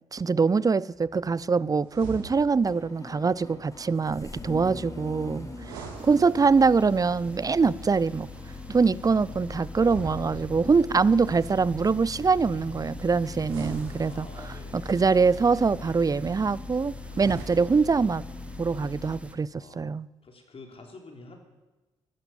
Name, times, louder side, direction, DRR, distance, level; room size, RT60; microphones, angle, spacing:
voice 1, 0.1-5.5 6.1-8.3 8.7-18.2 18.6-20.1, right 4 dB, 25° right, 0.5 m, -24 dB
Engine starting, 0.9-19.3, left 3 dB, 25° left, 3.7 m, -41 dB
sound 1, 1.8-2.8 5.5-6.8 9.7-10.9 13.4-14.7 17.0-18.0, right 3 dB, 85° right, 2.2 m, -42 dB
sound 2, 6.0-19.4, right 1 dB, 10° right, 1.4 m, -49 dB
voice 2, 14.1-14.9 19.6-19.9 20.2-21.4, left 3 dB, 45° left, 3.7 m, -48 dB
15.5 x 12.0 x 7.1 m
hypercardioid pair, 45°, 14 cm